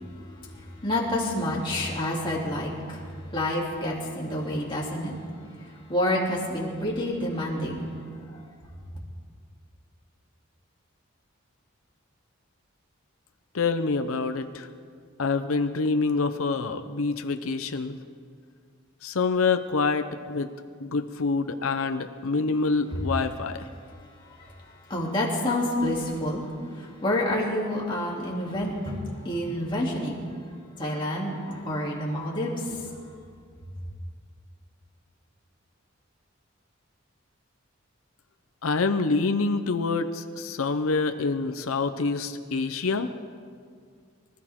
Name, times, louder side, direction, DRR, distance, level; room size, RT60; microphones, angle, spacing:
voice 1, 0.2-3.0 3.3-5.1 5.6-7.9 24.4-24.5 24.9-26.5 26.7-30.2 30.8-32.7, left 1 dB, 25° left, -4 dB, 2.9 m, -28 dB
voice 2, 13.5-14.7 15.2-18.0 19.0-20.5 20.8-23.7 38.6-43.1, left 4 dB, 85° left, 8 dB, 0.7 m, -26 dB
25.0 x 14.0 x 3.7 m, 2.1 s
head